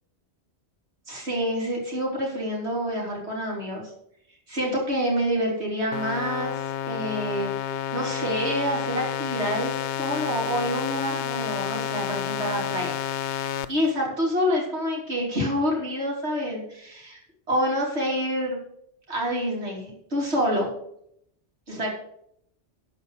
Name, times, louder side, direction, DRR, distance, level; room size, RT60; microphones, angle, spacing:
voice 1, 1.1-3.8 4.5-7.5 7.9-17.2 17.5-18.6 19.1-20.7 21.7-21.9, equal, 75° right, -2 dB, 3.5 m, -27 dB
sound 1, 5.9-13.7, left 10 dB, 85° left, 0.9 m, -30 dB
12.5 x 5.1 x 6.4 m, 0.71 s
omnidirectional pair, 1.1 m